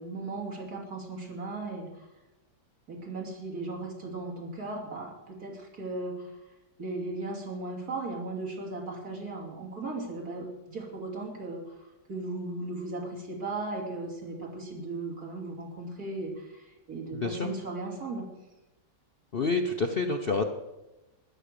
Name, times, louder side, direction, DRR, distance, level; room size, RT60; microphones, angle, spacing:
voice 1, 0.0-2.1 2.9-6.3 6.8-18.2, right 2 dB, 60° right, 0 dB, 3.3 m, -37 dB
voice 2, 17.1-17.5 19.3-20.4, left 3 dB, 45° left, 5 dB, 0.8 m, -28 dB
13.0 x 10.0 x 6.7 m, 1.0 s
omnidirectional pair, 1.9 m